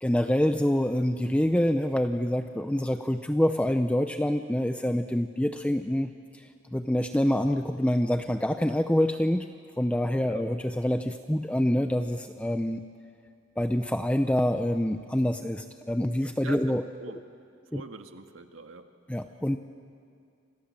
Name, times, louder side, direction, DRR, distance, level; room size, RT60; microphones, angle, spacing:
voice 1, 0.0-9.5 9.8-12.8 13.6-16.8 17.7-17.8 19.1-19.6, left 1 dB, 5° left, 7 dB, 0.6 m, -26 dB
voice 2, 10.1-10.5 16.4-17.2 17.7-18.9, right 3 dB, 85° right, 6 dB, 1.8 m, -43 dB
29.0 x 26.5 x 7.6 m, 2.3 s
head